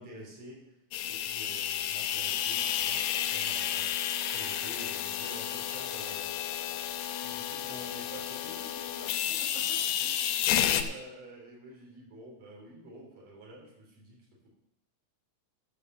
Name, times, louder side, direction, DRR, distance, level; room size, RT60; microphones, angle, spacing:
voice 1, 0.0-3.9 4.3-6.3 6.7-6.9 7.2-14.5, right 1 dB, 35° right, -2 dB, 4.3 m, -48 dB
sound 1, 0.9-10.8, left 11 dB, 80° left, 2.7 m, -31 dB
12.5 x 6.5 x 6.8 m, 0.84 s
omnidirectional pair, 5.9 m